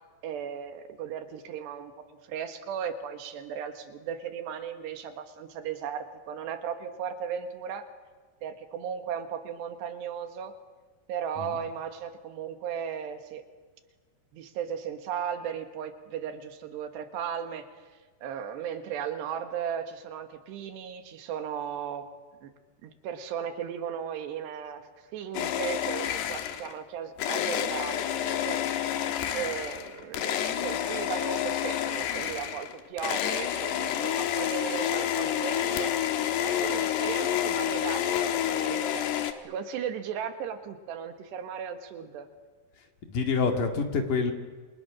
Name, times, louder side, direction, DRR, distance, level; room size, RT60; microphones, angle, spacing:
voice 1, 0.2-1.9 2.2-7.9 8.4-10.5 11.1-13.4 14.3-17.7 18.2-22.1 22.4-22.5 22.8-29.1 29.3-36.0 36.4-39.1 39.4-42.3, right 8 dB, 90° right, 7 dB, 3.8 m, -36 dB
sound 1, 25.3-26.8 27.2-39.3, left 10 dB, 80° left, 3.4 m, -29 dB
voice 2, 43.1-44.3, left 4 dB, 55° left, 4 dB, 3.5 m, -27 dB
28.5 x 28.0 x 6.3 m, 1.4 s
omnidirectional pair, 4.8 m